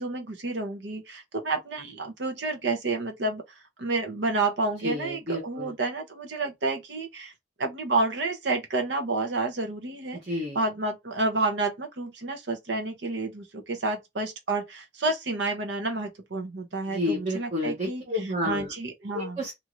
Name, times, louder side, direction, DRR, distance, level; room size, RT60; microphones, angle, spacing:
voice 1, 0.0-3.4 3.8-7.3 7.6-10.2 10.5-18.0 18.4-19.4, right 2 dB, 65° right, 0.8 m, -29 dB
voice 2, 4.8-5.7 10.1-10.6 16.9-18.7 19.1-19.5, left 1 dB, 35° right, 0.9 m, -30 dB
2.7 x 2.5 x 2.9 m
head